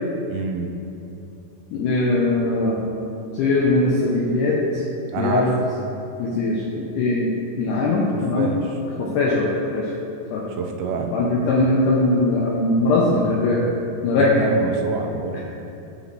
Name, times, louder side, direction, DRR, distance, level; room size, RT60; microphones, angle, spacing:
voice 1, 0.3-0.7 5.1-5.5 8.1-8.6 10.5-11.1 14.1-15.4, right 5 dB, 85° right, 3 dB, 2.5 m, -27 dB
voice 2, 1.7-2.8 3.3-4.8 5.2-5.5 6.2-7.3 7.6-8.5 9.0-9.9 10.3-10.5 11.1-13.6 14.0-14.3 15.3-15.4, left 2 dB, 90° left, -4 dB, 1.8 m, -20 dB
8.3 x 5.1 x 3.0 m, 2.7 s
omnidirectional pair, 4.3 m